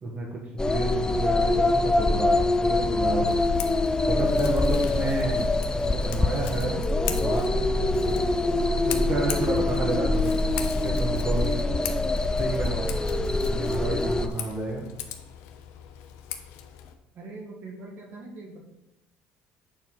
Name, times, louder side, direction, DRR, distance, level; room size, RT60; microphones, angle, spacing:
voice 1, 0.0-3.2 4.1-6.8 7.1-8.3 8.9-11.6 12.4-13.0 13.5-14.8, right 2 dB, 35° right, -1 dB, 1.8 m, -31 dB
sound 1, 0.6-14.3, left 2 dB, 15° left, 0.6 m, -24 dB
Scissors, 3.2-16.9, left 8 dB, 80° left, 0.9 m, -39 dB
sound 2, 5.8-7.0, left 8 dB, 40° left, 2.4 m, -45 dB
voice 2, 17.1-18.6, right 2 dB, 60° right, 0 dB, 2.5 m, -42 dB
8.0 x 4.5 x 5.6 m, 0.87 s
supercardioid pair, 90°, 4 cm